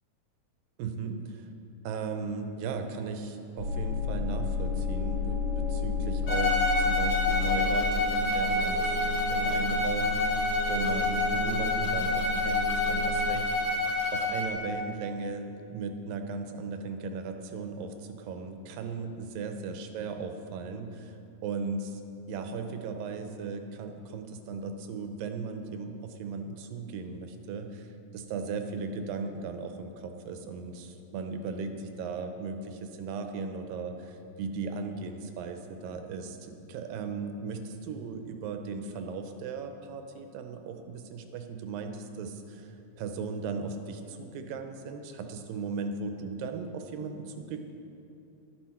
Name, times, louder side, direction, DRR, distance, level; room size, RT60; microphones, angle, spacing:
voice 1, 0.8-1.5 1.8-13.8 14.1-21.1 21.4-22.0 22.3-27.9 28.1-42.7 43.0-47.6, right 4 dB, 80° right, 6 dB, 2.3 m, -37 dB
sound 1, 3.6-13.3, left 4 dB, 80° left, 2.9 m, -32 dB
Bowed string instrument, 6.3-14.6, left 2 dB, 65° left, 2.1 m, -28 dB
11.0 x 10.0 x 4.3 m, 2.8 s
omnidirectional pair, 4.2 m